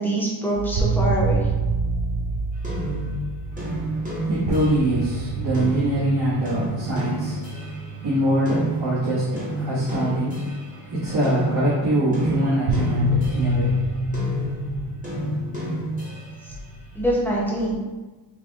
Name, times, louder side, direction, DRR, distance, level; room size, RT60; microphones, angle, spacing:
voice 1, 0.0-1.5 16.9-17.8, right 1 dB, 5° left, -6 dB, 0.7 m, -24 dB
sound 1, 0.6-10.7 12.7-17.7, right 1 dB, 90° right, 0.6 m, -27 dB
sound 2, 2.6-7.9 8.4-13.7 14.1-16.5, right 1 dB, 15° right, 1.0 m, -31 dB
voice 2, 3.5-13.9, right 1 dB, 70° right, -12 dB, 1.4 m, -24 dB
5.3 x 2.3 x 2.8 m, 1.3 s
wide cardioid pair, 165°, 46 cm